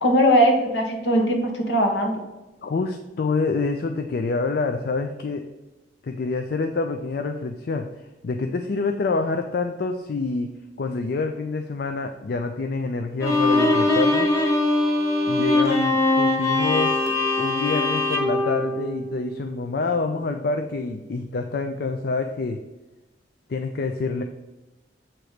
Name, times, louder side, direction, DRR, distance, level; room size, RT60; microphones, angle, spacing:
voice 1, 0.0-2.2, equal, 75° left, 2 dB, 1.3 m, -20 dB
voice 2, 2.6-5.4 6.0-10.5 10.8-14.3 15.3-17.0 17.4-22.6 23.5-24.2, left 3 dB, 60° left, 6 dB, 0.4 m, -27 dB
Bowed string instrument, 13.2-19.5, left 2 dB, 20° left, 1.2 m, -22 dB
7.7 x 3.0 x 4.9 m, 1.1 s
head